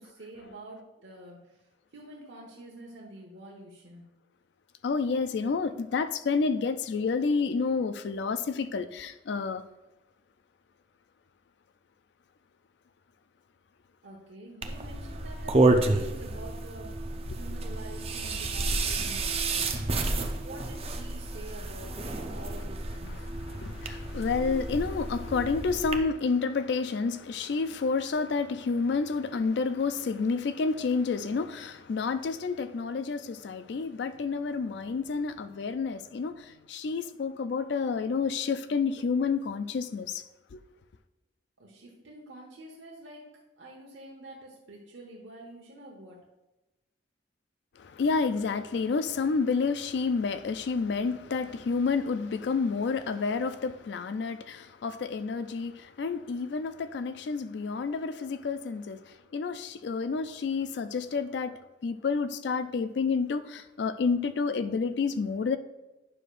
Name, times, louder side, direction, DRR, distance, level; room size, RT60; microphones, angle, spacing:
voice 1, 0.0-1.6 1.9-4.0 14.0-17.1 17.4-23.3 41.6-43.3 43.6-46.2, right 1 dB, 80° right, 1.1 m, -47 dB
voice 2, 4.8-9.6 23.0-40.2 40.5-40.6 47.8-65.6, left 4 dB, 65° left, 0.4 m, -29 dB
sound 1, 14.6-26.0, right 2 dB, 30° right, 0.6 m, -30 dB
9.7 x 6.5 x 2.5 m
head